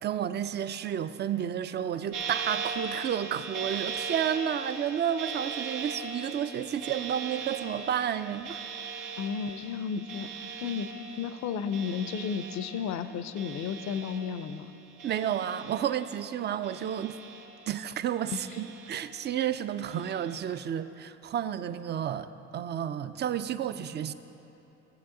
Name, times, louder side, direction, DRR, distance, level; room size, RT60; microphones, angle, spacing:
voice 1, 0.0-8.6 15.0-17.2 17.7-24.1, right 9 dB, 35° right, 13 dB, 0.4 m, -31 dB
sound 1, 2.1-14.7 15.0-16.2 16.6-17.8 18.3-19.3 19.9-20.4, right 5 dB, 80° right, 0.9 m, -39 dB
voice 2, 9.2-10.9 11.2-14.7 18.3-18.4, left 7 dB, 60° left, 11 dB, 0.5 m, -33 dB
11.5 x 7.6 x 3.7 m, 3.0 s
supercardioid pair, 70°, 32 cm